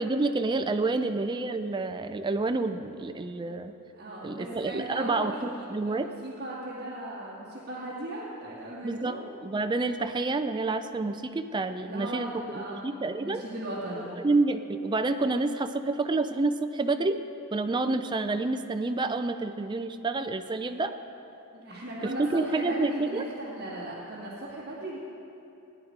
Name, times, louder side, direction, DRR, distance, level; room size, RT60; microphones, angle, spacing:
voice 1, 0.0-3.7 4.2-6.1 8.8-13.4 14.2-17.2 17.5-20.9 22.2-23.3, right 3 dB, 20° right, 8 dB, 0.4 m, -28 dB
voice 2, 4.0-9.2 11.8-14.1 21.5-25.0, right 1 dB, 45° right, -9 dB, 2.2 m, -37 dB
19.0 x 9.6 x 4.7 m, 3.0 s
head